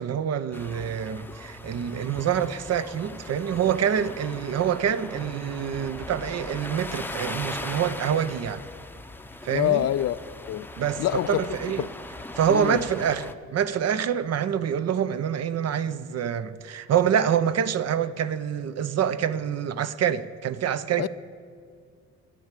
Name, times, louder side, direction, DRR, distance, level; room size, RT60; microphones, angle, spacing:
voice 1, 0.0-8.6 9.4-9.9 10.8-11.0 11.3-11.9 12.4-21.1, right 8 dB, 55° right, 0.7 m, -26 dB
sound 1, 0.5-13.3, left 2 dB, 5° left, 0.7 m, -39 dB
voice 2, 9.5-10.2 10.5-10.7 11.0-11.4 11.8-11.9 12.5-12.8 21.0-21.1, left 13 dB, 55° left, 0.4 m, -25 dB
13.0 x 10.5 x 7.5 m
cardioid pair, 90°, 30 cm